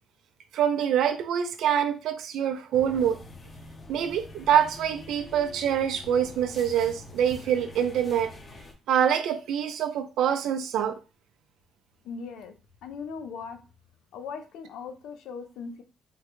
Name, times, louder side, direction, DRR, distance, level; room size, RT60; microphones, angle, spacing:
voice 1, 0.5-3.2 3.9-8.3 8.9-11.0, right 9 dB, 80° right, 0.4 m, -25 dB
sound 1, 2.7-8.7, left 2 dB, 35° left, 0.6 m, -45 dB
voice 2, 12.0-12.5 12.8-13.6 14.1-15.8, left 5 dB, 90° left, 0.4 m, -39 dB
3.6 x 2.1 x 3.0 m
cardioid pair, 100°, 0 cm